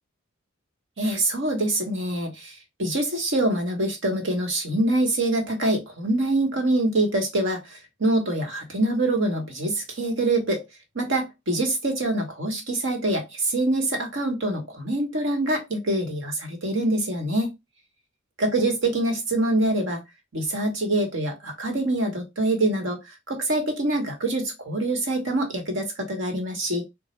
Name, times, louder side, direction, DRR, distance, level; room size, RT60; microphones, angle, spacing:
voice 1, 1.0-10.6 10.9-17.5 18.4-20.0 20.3-23.0 23.3-26.8, right 1 dB, 60° right, 1.1 m, -25 dB
3.8 x 2.0 x 3.1 m
head